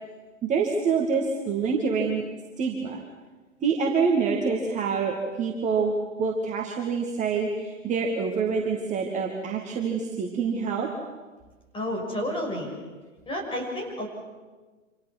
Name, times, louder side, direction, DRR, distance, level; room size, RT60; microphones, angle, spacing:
voice 1, 0.4-2.2 2.6-3.0 3.6-10.9, right 5 dB, 20° right, 0 dB, 2.4 m, -26 dB
voice 2, 11.7-12.8 13.3-14.1, left 1 dB, 15° left, 1 dB, 6.5 m, -30 dB
28.0 x 27.0 x 6.2 m, 1.3 s
figure-of-eight pair, 115°, 39 cm